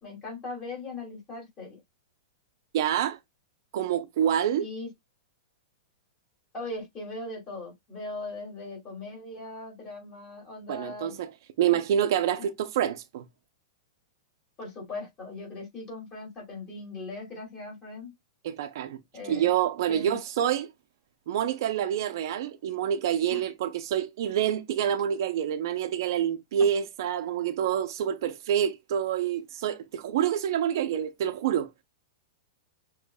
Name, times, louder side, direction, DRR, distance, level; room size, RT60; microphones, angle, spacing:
voice 1, 0.0-1.8 4.6-4.9 6.5-11.2 11.7-11.8 12.4-12.5 14.6-18.1 19.1-19.5 19.9-20.2 23.3-23.4, left 2 dB, 20° left, 2.6 m, -39 dB
voice 2, 2.7-3.2 3.7-4.6 10.7-11.3 11.6-13.2 18.4-19.0 19.2-20.7 21.3-31.7, right 9 dB, 50° right, 0.6 m, -27 dB
6.3 x 3.0 x 2.3 m
supercardioid pair, 170°, 3 cm